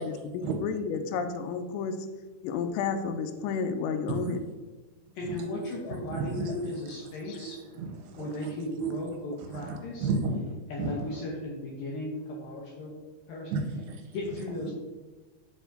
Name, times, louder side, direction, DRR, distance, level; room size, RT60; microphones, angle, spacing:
voice 1, 0.0-2.0 2.4-4.4 5.8-6.0 6.5-6.6 7.3-7.4, left 5 dB, 90° left, 7 dB, 2.8 m, -31 dB
voice 2, 5.2-7.6 8.2-10.1 10.7-12.9 13.3-13.5 14.1-14.7, left 2 dB, 70° left, -3 dB, 2.2 m, -36 dB
voice 3, 5.9-6.5 7.3-8.5 8.8-8.9 9.4-10.4 10.8-11.2 13.5-14.2, right 4 dB, 85° right, 3 dB, 2.7 m, -33 dB
8.3 x 4.9 x 2.6 m, 1.3 s
omnidirectional pair, 4.9 m